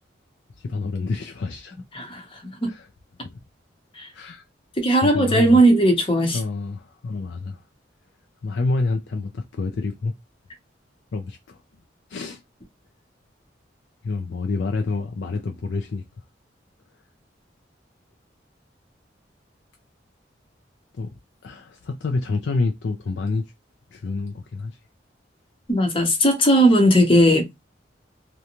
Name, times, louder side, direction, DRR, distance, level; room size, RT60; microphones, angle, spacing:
voice 1, 0.6-1.8 2.7-2.9 3.2-3.4 4.1-4.4 5.0-5.6 6.3-7.6 8.4-10.1 11.1-11.6 12.1-12.4 14.0-16.0 20.9-21.1 21.4-23.5 23.9-24.8, left 3 dB, 75° left, 0.4 m, -28 dB
voice 2, 1.9-2.7 3.9-4.1 4.8-6.4 25.7-27.5, right 1 dB, 30° left, 0.7 m, -17 dB
2.5 x 2.2 x 2.9 m
head